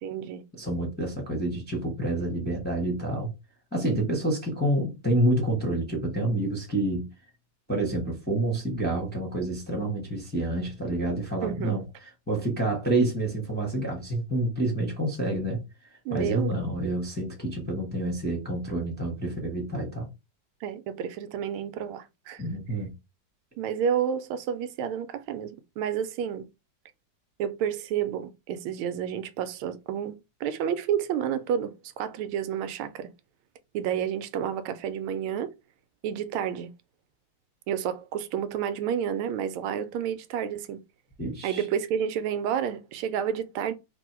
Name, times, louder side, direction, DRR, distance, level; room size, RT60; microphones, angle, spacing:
voice 1, 0.0-0.4 11.4-11.8 16.0-16.5 20.6-22.5 23.6-26.5 27.4-33.1 33.7-35.5 36.0-36.7 37.7-40.8 41.4-43.7, right 8 dB, 85° right, 1.5 m, -30 dB
voice 2, 0.5-3.3 3.7-7.1 7.7-15.6 16.1-20.1 22.4-22.9 41.2-41.6, right 1 dB, 5° left, 0.8 m, -28 dB
3.5 x 2.6 x 4.3 m
omnidirectional pair, 2.3 m